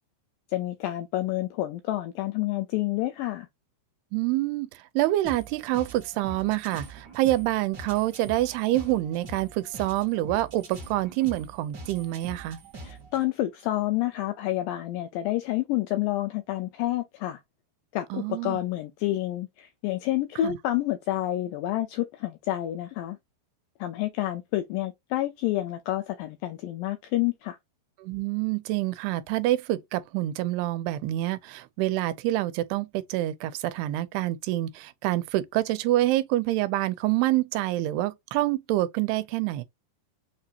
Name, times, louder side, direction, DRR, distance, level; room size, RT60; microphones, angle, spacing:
voice 1, 0.5-3.5 12.7-17.4 17.9-23.2 23.8-27.6, left 15 dB, 85° left, 2.0 m, -29 dB
voice 2, 4.1-12.6 18.1-18.6 20.4-20.6 28.0-39.6, right 16 dB, 85° right, 2.6 m, -27 dB
sound 1, 5.2-13.2, right 2 dB, 55° right, 1.2 m, -43 dB
6.8 x 2.8 x 2.4 m
omnidirectional pair, 4.6 m